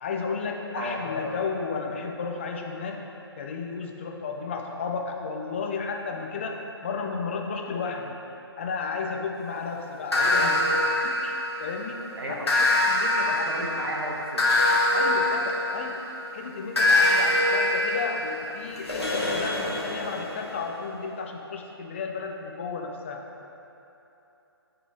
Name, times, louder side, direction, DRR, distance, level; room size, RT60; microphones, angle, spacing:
voice 1, 0.0-8.2 8.6-10.5 11.0-13.7 14.9-16.1 16.3-23.2, left 4 dB, 30° left, 2 dB, 0.5 m, -33 dB
voice 2, 0.8-1.3 10.1-10.8 12.2-12.5 13.3-14.5, right 1 dB, 65° right, -2 dB, 1.2 m, -34 dB
sound 1, 10.1-11.8 12.5-16.2 16.8-20.5, left 2 dB, 80° left, 1.5 m, -24 dB
10.5 x 3.9 x 3.6 m, 3.0 s
figure-of-eight pair, 140°, 14 cm